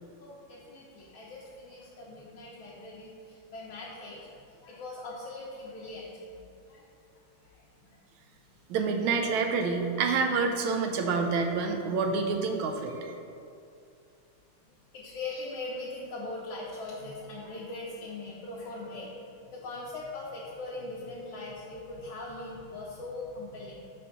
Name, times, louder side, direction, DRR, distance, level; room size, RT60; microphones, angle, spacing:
voice 1, 0.2-6.4 6.7-6.9 7.4-7.6 7.9-8.0 14.9-19.1 19.5-23.8, left 2 dB, 75° left, -6 dB, 1.6 m, -41 dB
voice 2, 8.7-13.1, right 4 dB, 80° right, 4 dB, 1.4 m, -28 dB
5.0 x 4.2 x 5.5 m, 2.5 s
omnidirectional pair, 2.3 m